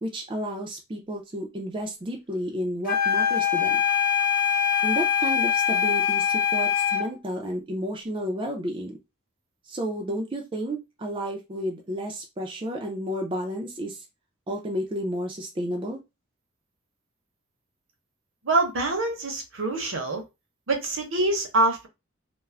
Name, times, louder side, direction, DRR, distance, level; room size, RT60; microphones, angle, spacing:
voice 1, 0.0-3.8 4.8-9.0 9.7-14.0 14.5-16.0, equal, 25° right, 2 dB, 0.4 m, -31 dB
sound 1, 2.8-7.1, left 8 dB, 40° left, 0.6 m, -23 dB
voice 2, 18.4-20.2 20.7-21.9, right 2 dB, 65° right, 4 dB, 0.7 m, -25 dB
2.3 x 2.0 x 3.2 m, 0.24 s
head